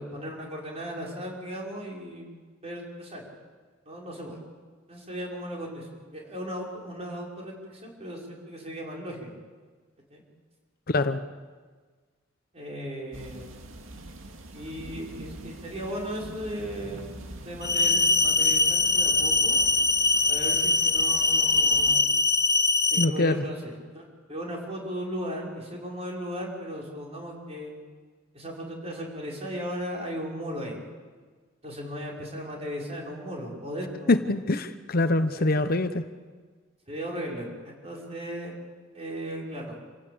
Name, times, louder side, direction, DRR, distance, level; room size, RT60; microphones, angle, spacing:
voice 1, 0.0-2.3 2.6-3.3 3.9-4.4 4.9-9.4 10.1-10.2 12.5-13.6 14.5-19.6 20.3-22.1 22.9-27.7 28.3-30.8 31.6-34.3 35.2-35.4 36.9-38.5 38.9-39.8, equal, 30° right, -1 dB, 5.6 m, -37 dB
voice 2, 10.9-11.2 23.0-23.4 34.1-36.0, left 2 dB, 50° left, 10 dB, 0.9 m, -24 dB
sound 1, 13.1-22.0, right 1 dB, 85° right, 2.2 m, -44 dB
sound 2, 17.6-23.0, left 3 dB, 15° left, 0.7 m, -22 dB
27.5 x 16.5 x 8.6 m, 1.5 s
head